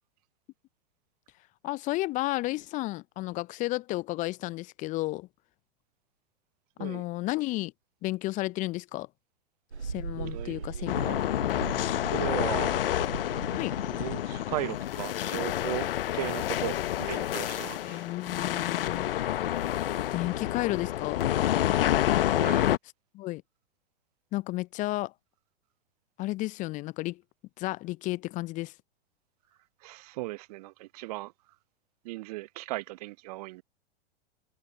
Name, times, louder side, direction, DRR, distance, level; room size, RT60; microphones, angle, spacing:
voice 1, 1.6-5.3 6.8-7.7 8.0-9.1 9.8-11.0 13.6-13.7 17.8-19.0 20.1-21.3 23.1-23.4 24.3-25.1 26.2-27.2 27.6-28.7, left 19 dB, 25° left, 0.6 m, -32 dB
Mechanical fan, 9.7-15.1, right 4 dB, 85° right, 1.5 m, -40 dB
voice 2, 10.2-11.2 12.1-12.8 13.9-18.1 22.4-22.7 29.8-31.6 32.0-33.6, right 20 dB, 40° right, 0.6 m, -37 dB
sound 1, 10.9-22.8, left 12 dB, 60° left, 1.2 m, -28 dB
figure-of-eight pair, 105°, 32 cm